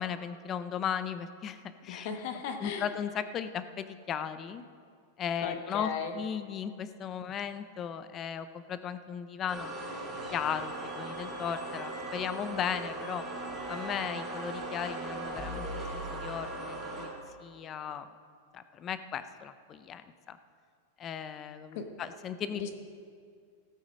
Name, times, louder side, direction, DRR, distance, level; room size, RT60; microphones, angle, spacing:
voice 1, 0.0-2.1 2.6-4.6 5.2-9.8 10.3-13.2 13.7-17.1 17.4-18.1 18.5-20.4 21.0-22.6, left 8 dB, 20° left, 12 dB, 0.4 m, -36 dB
voice 2, 1.9-2.9 5.4-6.1 21.7-21.8 22.5-22.7, left 6 dB, 45° left, 6 dB, 1.1 m, -36 dB
sound 1, 9.5-17.1, right 1 dB, 5° right, 4.0 m, -38 dB
17.0 x 8.3 x 5.2 m, 2.2 s
supercardioid pair, 170°, 0 cm